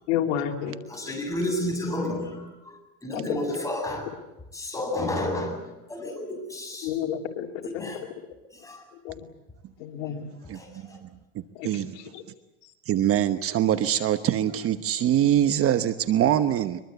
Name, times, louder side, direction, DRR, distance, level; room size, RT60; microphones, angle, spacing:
voice 1, 0.1-0.8 3.1-3.4 6.8-7.6 9.0-9.2 9.8-10.3 11.6-11.7, left 9 dB, 80° left, 3 dB, 3.1 m, -29 dB
voice 2, 0.9-4.1 4.5-5.6 5.9-7.0 7.6-8.0 8.5-8.8 10.5-11.0, left 1 dB, 10° left, 2 dB, 7.9 m, -31 dB
voice 3, 10.5-11.1 11.6-12.0 12.9-16.8, right 11 dB, 40° right, 11 dB, 1.1 m, -24 dB
23.5 x 22.5 x 8.2 m, 0.99 s
supercardioid pair, 125°, 34 cm